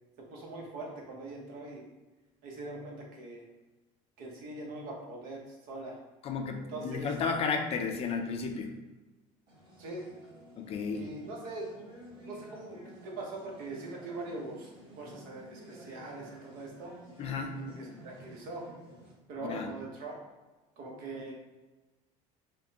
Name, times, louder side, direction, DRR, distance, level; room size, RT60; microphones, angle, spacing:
voice 1, 0.2-1.8 2.4-3.4 4.2-6.0 6.7-7.1 9.8-10.1 10.9-11.7 12.2-14.7 15.0-16.9 17.5-18.7 19.3-20.2 20.8-21.3, right 2 dB, 65° right, -1 dB, 1.0 m, -42 dB
voice 2, 6.2-8.7 10.5-11.1 17.2-17.6 19.4-19.7, left 5 dB, 40° left, 5 dB, 0.4 m, -33 dB
sound 1, 9.5-19.1, right 1 dB, 30° right, 1.3 m, -52 dB
4.8 x 2.2 x 2.8 m, 1.1 s
cardioid pair, 130°, 16 cm